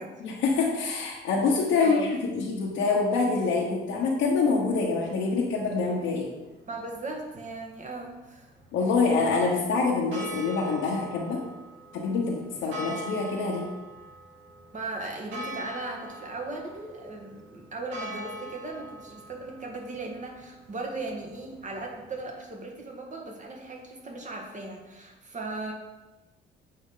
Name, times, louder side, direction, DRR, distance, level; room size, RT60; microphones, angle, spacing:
voice 1, 0.2-6.3 8.7-11.4 11.9-13.6, left 4 dB, 90° left, -5 dB, 1.1 m, -26 dB
sound 1, 4.2-22.3, right 1 dB, 80° right, 1.5 m, -45 dB
voice 2, 6.7-8.5 14.7-25.7, right 2 dB, 40° right, 1 dB, 1.5 m, -37 dB
7.6 x 4.5 x 3.8 m, 1.1 s
cardioid pair, 90°, 20 cm